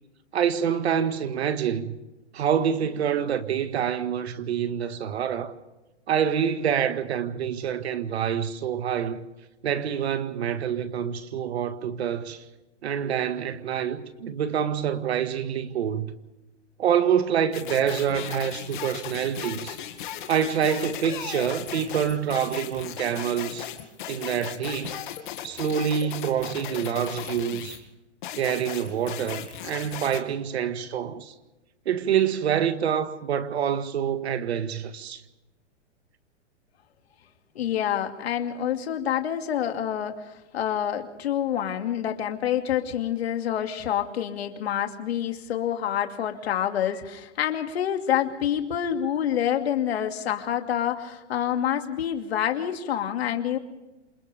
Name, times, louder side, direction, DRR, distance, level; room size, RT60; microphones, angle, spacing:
voice 1, 0.3-2.0 2.3-5.5 6.1-9.3 9.6-12.4 12.8-16.1 16.8-19.8 20.3-23.7 24.1-25.0 25.4-27.8 28.3-31.3 31.9-35.2, right 8 dB, 65° right, 1.9 m, -26 dB
sound 1, 17.5-27.8 28.2-30.2, left 10 dB, 45° left, 2.3 m, -37 dB
voice 2, 37.5-53.6, left 10 dB, 60° left, 2.5 m, -27 dB
28.0 x 26.5 x 3.5 m
hypercardioid pair, 175°, 35 cm